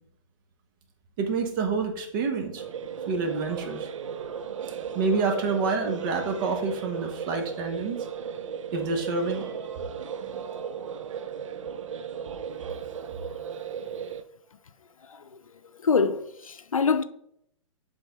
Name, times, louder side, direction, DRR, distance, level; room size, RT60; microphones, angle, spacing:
voice 1, 1.2-2.6 3.1-3.9 4.9-8.0 8.7-9.5, right 4 dB, 40° right, 1.2 m, -28 dB
sound 1, 2.6-14.2, right 7 dB, 70° right, 0.5 m, -36 dB
voice 2, 15.8-17.0, left 5 dB, 90° left, 0.5 m, -24 dB
7.8 x 3.6 x 3.5 m
hypercardioid pair, 125°, 17 cm